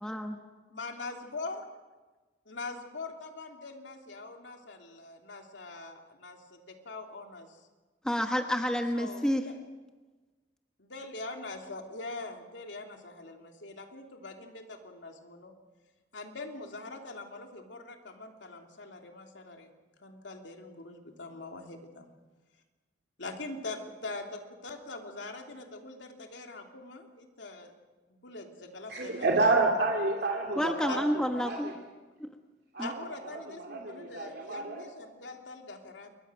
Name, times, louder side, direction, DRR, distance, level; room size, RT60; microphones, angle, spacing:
voice 1, 0.0-0.4 8.0-9.4 30.6-31.7 32.2-32.3 32.8-32.9, equal, 5° left, 4 dB, 1.2 m, -29 dB
voice 2, 0.7-1.6 2.5-7.6 8.9-9.4 10.8-15.5 16.1-19.7 20.0-22.1 23.2-27.7 28.1-29.6 30.9-31.0 32.8-36.1, left 3 dB, 80° left, 3 dB, 3.1 m, -43 dB
voice 3, 28.9-31.0 31.4-31.6 32.7-32.9 33.3-33.4 33.7-34.8, right 3 dB, 60° right, 0 dB, 3.0 m, -28 dB
28.5 x 22.5 x 6.3 m, 1.3 s
head